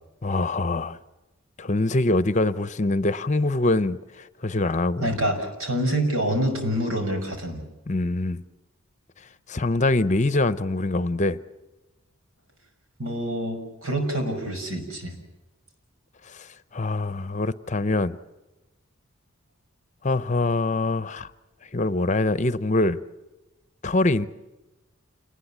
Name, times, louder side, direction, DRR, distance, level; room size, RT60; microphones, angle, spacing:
voice 1, 0.2-1.0 1.6-5.1 7.9-8.4 9.5-11.4 16.2-18.2 20.0-21.3 21.6-23.0 23.8-24.3, left 2 dB, 35° left, 0.7 m, -24 dB
voice 2, 5.0-7.6 13.0-15.2, right 1 dB, 80° right, 5.9 m, -26 dB
28.0 x 20.0 x 7.4 m
head